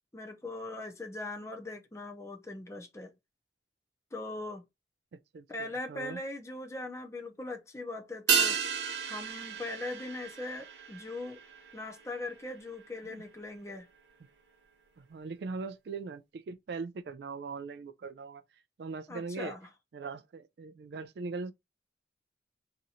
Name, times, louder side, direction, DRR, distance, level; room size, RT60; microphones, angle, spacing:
voice 1, 0.0-3.1 4.1-4.6 5.5-8.6 9.0-11.4 11.7-13.9 19.1-19.7, left 2 dB, 15° left, 0.7 m, -40 dB
voice 2, 5.1-6.2 13.0-13.2 15.0-18.4 18.8-19.5 19.9-21.5, right 4 dB, 65° right, 0.3 m, -40 dB
sound 1, 8.3-13.0 13.3-13.4, right 7 dB, 85° right, 0.8 m, -33 dB
2.9 x 2.5 x 4.1 m
head